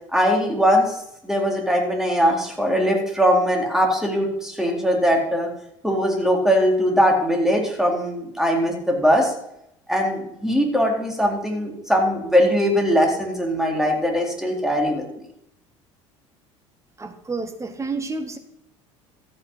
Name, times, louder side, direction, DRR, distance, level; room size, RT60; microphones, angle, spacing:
voice 1, 0.1-0.9 1.2-5.5 5.8-9.3 9.9-15.0, equal, 5° right, 0 dB, 4.0 m, -20 dB
voice 2, 17.0-18.4, right 3 dB, 20° right, 7 dB, 2.0 m, -30 dB
14.0 x 8.6 x 5.7 m, 0.78 s
hypercardioid pair, 70°, 16 cm